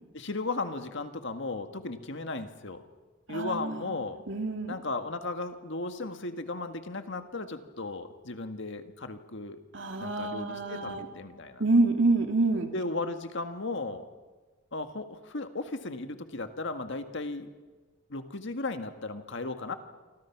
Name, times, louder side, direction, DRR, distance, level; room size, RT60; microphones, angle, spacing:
voice 1, 0.1-2.8 3.3-4.2 4.7-9.6 10.0-11.6 12.7-14.0 14.7-17.5 18.1-19.7, left 3 dB, 65° left, 7 dB, 1.9 m, -35 dB
voice 2, 3.3-4.0 4.3-4.7 9.7-11.1 11.6-12.7, right 2 dB, 65° right, 5 dB, 2.6 m, -27 dB
28.0 x 25.0 x 6.1 m, 1.3 s
head